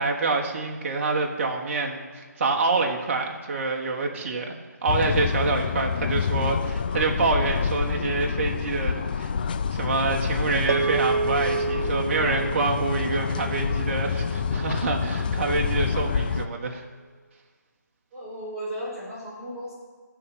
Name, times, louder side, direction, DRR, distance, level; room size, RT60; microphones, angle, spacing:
voice 1, 0.0-4.5 4.8-9.3 9.7-16.8, right 3 dB, 40° right, 1 dB, 1.5 m, -26 dB
sound 1, 4.9-16.5, left 6 dB, 30° left, 0.4 m, -27 dB
sound 2, 10.7-15.2, right 4 dB, 60° right, 1.4 m, -30 dB
voice 2, 18.1-19.7, equal, ahead, -18 dB, 3.9 m, -35 dB
12.5 x 5.0 x 8.4 m, 1.5 s
figure-of-eight pair, 155°, 10 cm